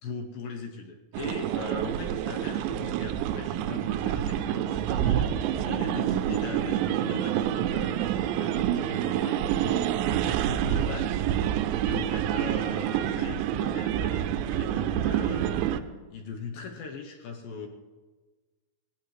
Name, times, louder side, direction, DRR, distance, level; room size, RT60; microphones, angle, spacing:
voice 1, 0.0-5.3 5.6-9.4 10.0-11.2 11.8-15.6 16.1-17.7, left 5 dB, 70° left, 3 dB, 2.3 m, -40 dB
sound 1, 1.1-15.8, right 10 dB, 90° right, 2.8 m, -27 dB
18.5 x 17.0 x 3.2 m, 1.3 s
omnidirectional pair, 5.0 m